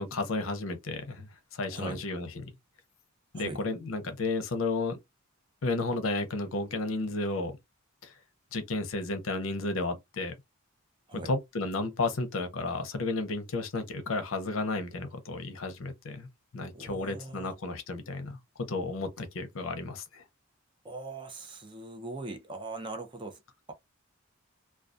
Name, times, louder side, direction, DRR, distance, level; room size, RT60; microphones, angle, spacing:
voice 1, 0.0-2.5 3.3-5.0 5.6-7.5 8.0-8.1 8.5-10.3 11.1-20.2, left 3 dB, 80° left, 0.6 m, -33 dB
voice 2, 1.7-2.0 3.3-3.6 11.1-11.3 16.7-17.5 20.8-23.4, right 2 dB, 25° right, 0.5 m, -40 dB
2.3 x 2.2 x 2.5 m
head